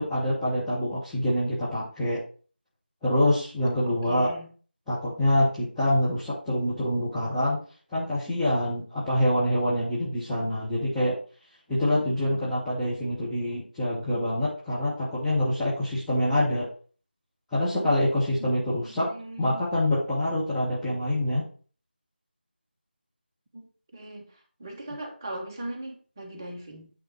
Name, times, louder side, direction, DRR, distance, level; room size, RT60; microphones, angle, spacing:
voice 1, 0.0-2.2 3.0-4.3 4.9-7.6 7.9-11.2 11.7-16.7 17.5-19.1 19.4-21.4, left 1 dB, 5° left, -13 dB, 0.7 m, -26 dB
voice 2, 3.8-4.5 11.9-12.5 18.4-19.6 23.5-24.2 24.6-26.9, right 1 dB, 20° right, 0 dB, 1.0 m, -39 dB
9.1 x 3.4 x 5.0 m, 0.40 s
figure-of-eight pair, 170°, 6 cm